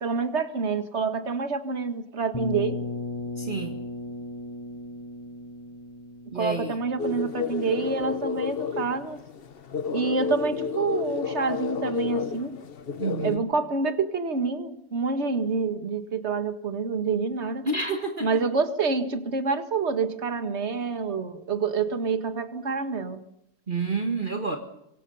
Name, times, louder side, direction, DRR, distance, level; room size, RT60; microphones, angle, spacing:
voice 1, 0.0-2.8 6.4-9.2 9.9-12.6 13.2-17.6 18.2-23.2, right 4 dB, 50° right, 9 dB, 2.1 m, -27 dB
sound 1, 2.3-8.1, left 2 dB, 20° left, 1.1 m, -36 dB
voice 2, 3.4-3.8 6.3-6.8 13.0-13.5 17.7-18.4 23.7-24.6, right 3 dB, 35° right, 4 dB, 1.9 m, -29 dB
sound 2, 7.0-13.4, left 5 dB, 45° left, 1.1 m, -31 dB
25.0 x 24.0 x 5.6 m, 0.83 s
omnidirectional pair, 1.5 m